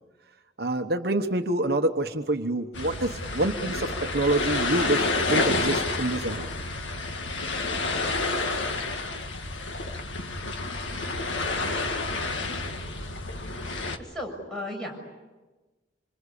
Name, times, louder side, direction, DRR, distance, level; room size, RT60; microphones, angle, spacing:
voice 1, 0.6-6.5, right 2 dB, 55° right, 6 dB, 1.1 m, -27 dB
sound 1, 2.7-14.0, left 3 dB, 90° left, 2.0 m, -29 dB
voice 2, 14.1-15.0, left 1 dB, 5° left, 0 dB, 7.0 m, -34 dB
27.0 x 25.5 x 8.5 m, 1.2 s
head